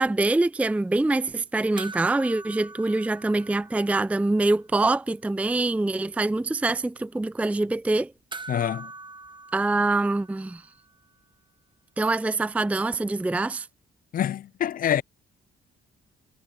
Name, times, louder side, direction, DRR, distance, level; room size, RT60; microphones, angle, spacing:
voice 1, 0.0-8.1 9.5-10.6 12.0-13.7, right 2 dB, 5° right, 0.5 m, -24 dB
sound 1, 1.8-4.4 4.7-4.8 8.3-10.9 13.1-13.2, right 3 dB, 25° right, 1.2 m, -43 dB
voice 2, 8.5-8.9 14.1-15.0, left 10 dB, 45° left, 0.4 m, -26 dB
cardioid pair, 90°, 20 cm